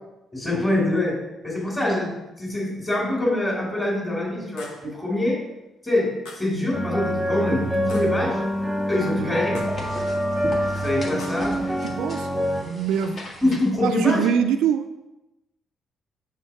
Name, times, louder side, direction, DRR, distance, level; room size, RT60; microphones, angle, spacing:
voice 1, 0.3-5.4 5.8-8.4 8.9-9.7 10.8-11.6 13.4-14.3, left 1 dB, 20° left, -4 dB, 2.5 m, -24 dB
sound 1, 4.6-5.0 6.3-6.6 7.9-8.3 9.6-9.9 11.2-11.6, left 3 dB, 90° left, 1.1 m, -43 dB
sound 2, 6.7-12.6, equal, ahead, 1.1 m, -26 dB
sound 3, 7.0-13.7, left 1 dB, 50° left, 1.6 m, -41 dB
voice 2, 11.8-12.3 12.6-13.6 13.8-14.9, right 8 dB, 90° right, 8 dB, 0.3 m, -24 dB
6.3 x 3.6 x 5.7 m, 0.97 s
cardioid pair, 90°, 0 cm